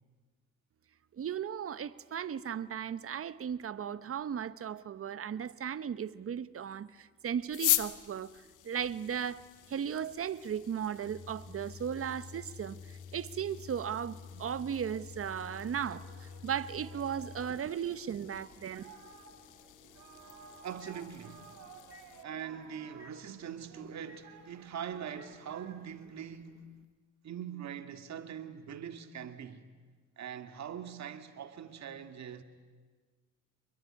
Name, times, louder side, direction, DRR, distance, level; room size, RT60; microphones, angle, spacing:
voice 1, 1.2-6.9 7.2-8.3 8.6-9.4 9.7-12.8 13.1-16.0 16.4-18.9, right 8 dB, 45° right, 1.1 m, -36 dB
sound 1, 7.5-22.2, left 14 dB, 85° left, 1.3 m, -41 dB
Microwave oven, 8.9-21.5 21.9-22.1 23.0-23.2 24.1-24.2 25.2-25.3, left 6 dB, 30° left, 3.0 m, -51 dB
Singing, 15.3-26.3, right 6 dB, 90° right, 4.6 m, -56 dB
voice 2, 20.6-21.5 22.2-26.7 27.2-29.7 30.2-32.4, right 8 dB, 65° right, 2.2 m, -42 dB
27.5 x 22.0 x 9.9 m
cardioid pair, 90°, 30 cm